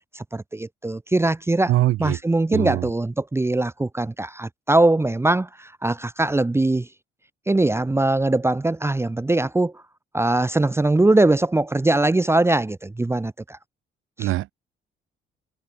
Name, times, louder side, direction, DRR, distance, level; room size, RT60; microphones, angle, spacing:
voice 1, 0.1-1.7 2.0-6.9 7.5-9.8 10.1-13.6 14.2-14.3, right 2 dB, 10° right, 0.8 m, -21 dB
voice 2, 1.7-2.2 2.5-2.9 14.2-14.5, right 16 dB, 85° right, 0.9 m, -22 dB
cardioid pair, 90°, 20 cm